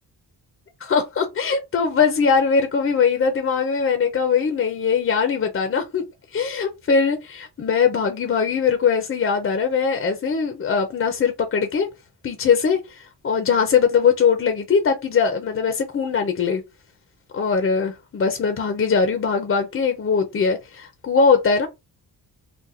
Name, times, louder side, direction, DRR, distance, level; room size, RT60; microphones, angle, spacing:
voice 1, 0.8-6.0 6.3-11.9 12.2-16.6 17.3-21.7, left 6 dB, 35° left, 0.5 m, -21 dB
2.6 x 2.1 x 4.0 m
wide cardioid pair, 145°, 39 cm